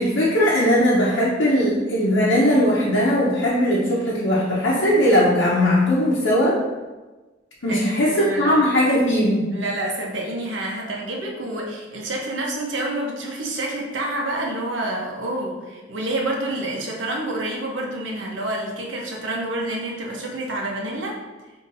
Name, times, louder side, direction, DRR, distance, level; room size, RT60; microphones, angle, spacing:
voice 1, 0.0-6.6 7.6-9.5, equal, 75° left, -7 dB, 0.8 m, -19 dB
voice 2, 7.7-8.5 9.5-21.2, right 1 dB, 85° right, -2 dB, 0.9 m, -28 dB
5.6 x 2.9 x 2.6 m, 1.2 s
head